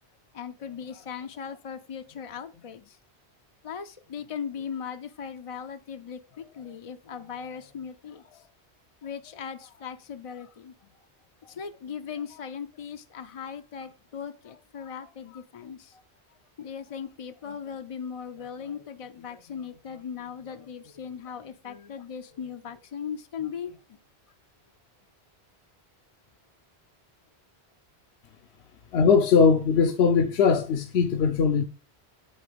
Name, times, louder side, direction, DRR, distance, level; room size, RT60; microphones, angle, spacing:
voice 1, 0.3-3.0 3.6-8.5 9.0-10.7 11.4-16.0 16.6-23.8, left 7 dB, 50° left, 0.4 m, -38 dB
voice 2, 28.9-31.6, left 5 dB, 75° left, 0.9 m, -20 dB
8.7 x 3.8 x 5.1 m
omnidirectional pair, 1.1 m